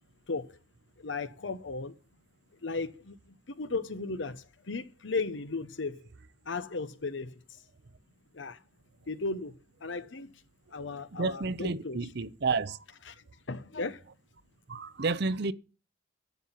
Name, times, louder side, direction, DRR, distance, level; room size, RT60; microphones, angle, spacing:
voice 1, 0.3-0.6 1.0-2.0 2.6-6.1 6.5-7.6 8.3-8.6 9.1-9.5 9.8-10.4 10.7-12.0 13.1-14.0, left 3 dB, 75° left, 0.9 m, -36 dB
voice 2, 11.1-12.8 14.7-15.5, right 4 dB, 60° right, 0.7 m, -31 dB
12.0 x 7.9 x 5.7 m
head